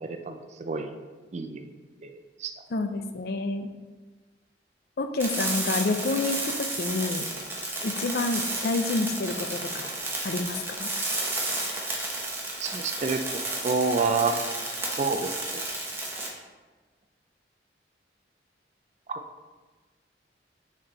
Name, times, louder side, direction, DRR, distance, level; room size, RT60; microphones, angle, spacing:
voice 1, 0.0-0.9 1.3-1.6 2.0-2.1 2.4-2.5 12.6-13.2 13.6-14.4 15.0-15.6 19.1-19.2, right 4 dB, 40° right, 6 dB, 0.4 m, -28 dB
voice 2, 2.7-3.7 5.0-7.3 7.8-9.9 10.2-10.9, left 3 dB, 60° left, 8 dB, 0.5 m, -28 dB
sound 1, 5.2-16.3, right 2 dB, 15° right, 1.0 m, -32 dB
6.1 x 4.4 x 3.9 m, 1.3 s
head